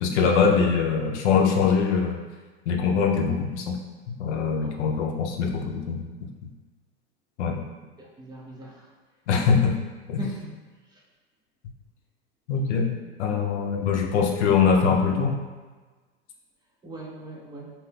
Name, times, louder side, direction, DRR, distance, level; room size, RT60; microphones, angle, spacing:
voice 1, 0.0-2.2 2.7-3.8 4.2-6.0 7.4-7.7 9.3-9.8 10.1-10.2 12.5-12.9 13.2-15.4, left 5 dB, 80° left, 2 dB, 0.6 m, -22 dB
voice 2, 8.0-8.9 10.2-10.6 10.9-11.0 16.8-17.7, right 1 dB, 15° right, -3 dB, 0.4 m, -39 dB
2.8 x 2.1 x 3.3 m, 1.3 s
hypercardioid pair, 105°, 34 cm